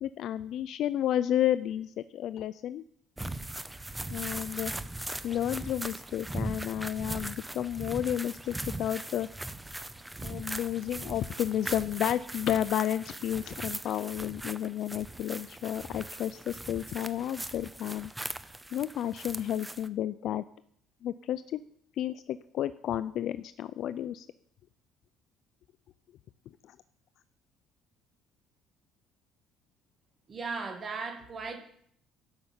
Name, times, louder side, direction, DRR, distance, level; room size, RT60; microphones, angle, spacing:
voice 1, 0.0-2.8 4.1-4.7 5.2-9.3 10.2-18.1 18.7-20.4 21.0-21.6 22.0-24.3 26.7-26.8, left 11 dB, 60° left, 14 dB, 0.4 m, -31 dB
sound 1, 3.2-19.9, right 1 dB, 10° right, 0.6 m, -39 dB
voice 2, 30.3-31.6, right 4 dB, 30° right, 6 dB, 2.2 m, -36 dB
12.0 x 6.8 x 8.8 m, 0.66 s
cardioid pair, 130°, 0 cm